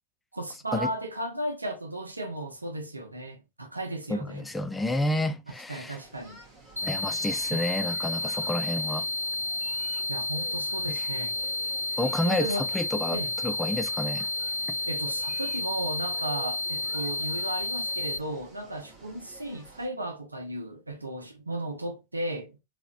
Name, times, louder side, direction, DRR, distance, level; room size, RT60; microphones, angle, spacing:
voice 1, 0.3-4.5 5.7-6.4 7.5-7.7 10.1-11.4 12.2-12.7 13.1-13.3 14.9-22.6, right 1 dB, 80° right, 0.8 m, -35 dB
voice 2, 4.1-6.0 6.8-9.1 12.0-13.2 13.4-14.3, left 1 dB, 5° left, 0.5 m, -30 dB
sound 1, 6.0-19.9, right 2 dB, 25° right, 1.6 m, -51 dB
sound 2, 6.8-18.2, left 2 dB, 90° left, 0.4 m, -31 dB
3.8 x 2.9 x 2.5 m
figure-of-eight pair, 90°, 0 cm